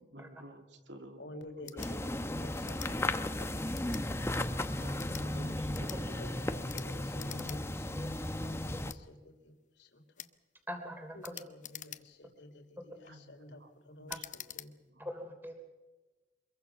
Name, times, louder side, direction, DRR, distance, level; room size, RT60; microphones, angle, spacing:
voice 1, 0.0-1.3 1.6-2.4 4.8-6.2 13.1-13.7 14.0-14.2 14.8-15.1, right 1 dB, 80° right, 5 dB, 2.8 m, -51 dB
voice 2, 1.2-5.1 6.2-10.3 11.1-14.7, left 1 dB, 85° left, 5 dB, 3.0 m, -51 dB
sound 1, 1.6-1.9 2.6-2.9 3.7-4.1 4.9-5.3 5.7-6.0 6.7-6.9 7.2-7.6 7.9-8.0 8.9-9.0 10.2-10.3 11.2-12.3 12.8-13.1 14.1-14.7, left 12 dB, 45° left, 0.9 m, -46 dB
sound 2, 1.8-8.9, left 1 dB, 15° left, 0.9 m, -35 dB
voice 3, 10.7-11.4 15.0-15.6, equal, 10° right, 4 dB, 3.2 m, -42 dB
25.5 x 22.5 x 5.9 m, 1.2 s
head